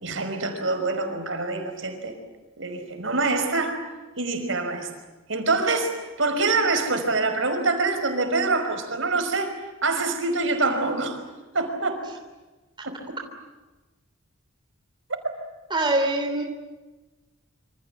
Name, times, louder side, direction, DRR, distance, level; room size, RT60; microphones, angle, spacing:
voice 1, 0.0-2.1 2.6-3.8 4.2-4.9 5.3-9.6 9.8-11.2 11.5-12.0 12.9-13.2, right 3 dB, 65° right, 6 dB, 5.3 m, -25 dB
voice 2, 15.7-16.4, right 2 dB, 25° right, 3 dB, 3.2 m, -23 dB
27.5 x 26.5 x 8.0 m, 1.2 s
head